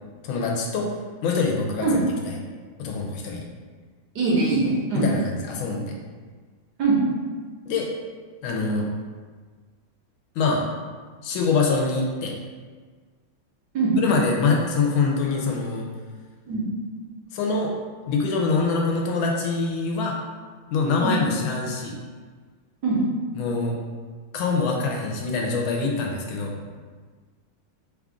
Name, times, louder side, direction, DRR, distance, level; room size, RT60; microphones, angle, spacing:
voice 1, 0.2-0.9 1.2-2.0 2.8-3.4 4.9-5.9 7.6-7.9 8.4-8.9 10.3-10.6 11.2-12.3 14.0-15.9 17.3-17.7 18.1-20.2 20.7-21.9 23.3-23.7 24.3-26.5, left 4 dB, 75° left, 0 dB, 1.3 m, -24 dB
voice 2, 4.1-5.1 6.8-7.0 13.7-13.9 16.5-16.6 21.0-21.1 22.8-23.0, right 3 dB, 65° right, -5 dB, 1.1 m, -22 dB
3.4 x 2.4 x 3.6 m, 1.5 s
omnidirectional pair, 2.3 m